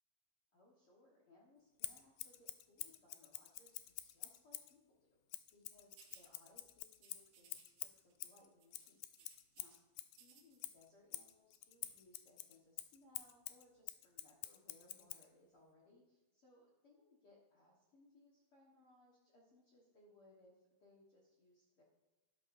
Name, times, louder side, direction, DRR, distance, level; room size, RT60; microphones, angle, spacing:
voice 1, 0.5-9.0 9.6-9.8 10.2-21.8, left 2 dB, 55° left, -4 dB, 1.6 m, -68 dB
Scissors, 1.8-4.7 5.3-10.2 10.6-15.3, left 15 dB, 80° left, 2.1 m, -48 dB
sound 1, 6.0-6.3 7.0-8.3 8.6-9.8 10.1-10.7, right 7 dB, 80° right, 3.1 m, -65 dB
11.5 x 11.5 x 2.6 m, 1.1 s
omnidirectional pair, 4.4 m